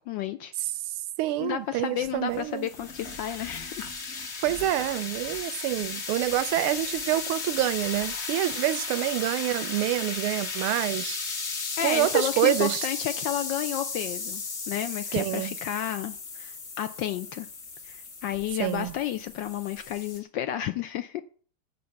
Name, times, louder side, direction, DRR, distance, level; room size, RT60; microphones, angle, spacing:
voice 1, 0.1-0.5 1.4-3.8 11.8-17.5 17.8-21.2, left 11 dB, 75° left, 1.0 m, -32 dB
voice 2, 1.2-2.7 4.4-11.2 11.8-12.9 15.1-15.5 18.6-18.9, right 15 dB, 80° right, 1.4 m, -27 dB
sound 1, 2.0-20.2, left 4 dB, 40° left, 1.1 m, -35 dB
8.6 x 5.2 x 6.9 m
omnidirectional pair, 2.4 m